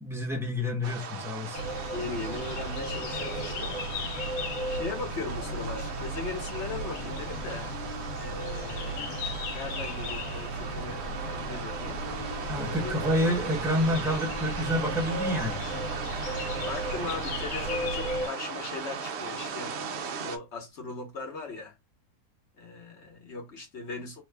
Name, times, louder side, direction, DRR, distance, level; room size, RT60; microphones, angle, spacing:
voice 1, 0.0-1.6 12.5-15.6, left 1 dB, 5° right, 0.6 m, -28 dB
sound 1, 0.8-20.4, right 5 dB, 65° right, 0.7 m, -38 dB
sound 2, 1.5-18.3, equal, 80° left, 1.3 m, -35 dB
voice 2, 1.9-3.9 4.7-7.7 8.2-12.0 12.7-13.0 16.2-19.8 20.2-21.8 22.6-24.2, left 4 dB, 50° left, 1.1 m, -39 dB
3.2 x 2.4 x 3.2 m
omnidirectional pair, 1.7 m